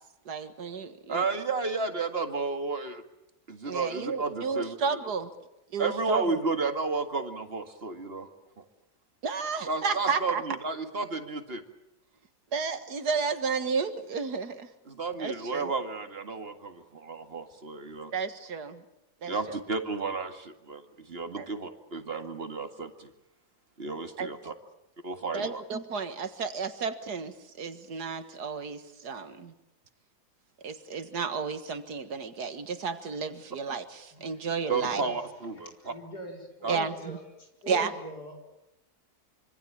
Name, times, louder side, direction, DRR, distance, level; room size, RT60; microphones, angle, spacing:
voice 1, 0.3-1.2 3.6-5.3 5.7-6.4 9.2-10.4 12.5-14.7 15.2-15.7 18.1-18.8 19.2-19.6 21.4-21.5 24.2-24.3 25.3-29.5 30.6-35.0 36.7-37.2 37.7-37.9, right 5 dB, 85° right, 10 dB, 2.1 m, -32 dB
voice 2, 1.1-3.0 3.5-4.8 5.8-8.3 8.6-8.7 9.7-11.6 14.9-18.1 19.3-23.1 23.8-24.5 25.0-25.6 34.7-35.9 36.6-36.8, right 4 dB, 40° right, 7 dB, 2.2 m, -32 dB
voice 3, 34.1-35.2 35.8-38.5, left 1 dB, 80° left, 2 dB, 5.3 m, -43 dB
26.0 x 24.5 x 8.7 m, 0.89 s
omnidirectional pair, 1.7 m